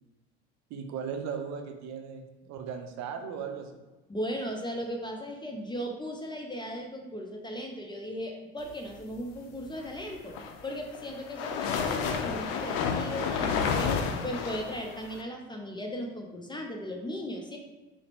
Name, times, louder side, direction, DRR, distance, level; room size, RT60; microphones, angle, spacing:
voice 1, 0.7-3.8, right 6 dB, 55° right, 5 dB, 0.6 m, -37 dB
voice 2, 4.1-10.4 10.6-13.9 14.2-17.6, equal, 15° left, 2 dB, 0.5 m, -37 dB
sound 1, 10.1-15.2, left 6 dB, 70° left, 0.5 m, -30 dB
4.7 x 2.1 x 3.0 m, 1.1 s
hypercardioid pair, 70°, 33 cm